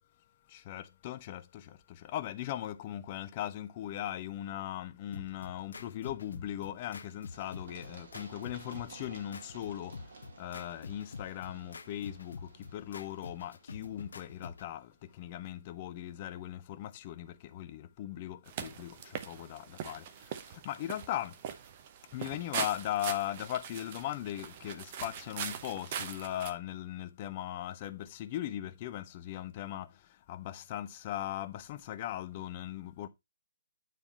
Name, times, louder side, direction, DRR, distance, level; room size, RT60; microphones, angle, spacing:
voice 1, 0.5-21.4 22.1-33.1, left 12 dB, 30° left, 0.7 m, -39 dB
sound 1, 5.1-14.7, left 4 dB, 65° left, 0.8 m, -47 dB
Run, 7.3-15.0, right 4 dB, 55° right, 2.2 m, -55 dB
sound 2, 18.5-26.5, right 8 dB, 35° right, 0.8 m, -42 dB
9.3 x 3.5 x 4.2 m
figure-of-eight pair, 140°, 0 cm